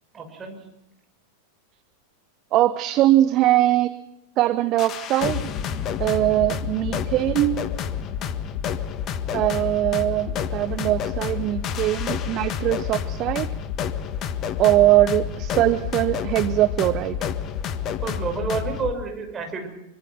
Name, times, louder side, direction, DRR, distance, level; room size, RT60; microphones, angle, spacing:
voice 1, 0.1-0.6 18.0-19.7, right 4 dB, 20° right, 3 dB, 6.5 m, -29 dB
voice 2, 2.5-3.9 4.4-5.5 6.0-7.6 9.3-13.5 14.6-17.2, right 15 dB, 35° right, 14 dB, 1.0 m, -21 dB
sound 1, 4.8-18.9, left 8 dB, 30° left, 1.6 m, -29 dB
26.0 x 24.5 x 6.1 m, 0.89 s
figure-of-eight pair, 90°, 0 cm